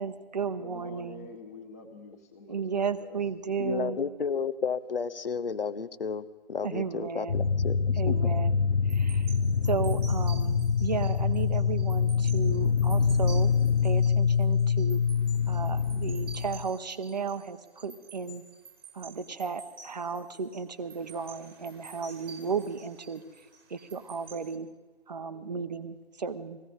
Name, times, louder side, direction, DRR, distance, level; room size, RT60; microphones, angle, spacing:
voice 1, 0.0-1.3 2.5-4.0 6.6-7.5 8.0-8.6 8.8-9.3 9.6-13.5 13.8-15.0 15.5-18.4 18.9-23.2 23.7-24.7 25.1-26.6, right 5 dB, 40° right, 0.9 m, -34 dB
voice 2, 0.6-3.2, left 4 dB, 15° left, 1.3 m, -47 dB
voice 3, 3.6-7.8 8.1-8.2, left 6 dB, 60° left, 0.9 m, -32 dB
sound 1, 7.3-16.7, left 6 dB, 90° left, 0.9 m, -25 dB
sound 2, 8.9-24.6, right 4 dB, 20° right, 1.5 m, -50 dB
20.0 x 16.0 x 3.9 m
figure-of-eight pair, 165°, 32 cm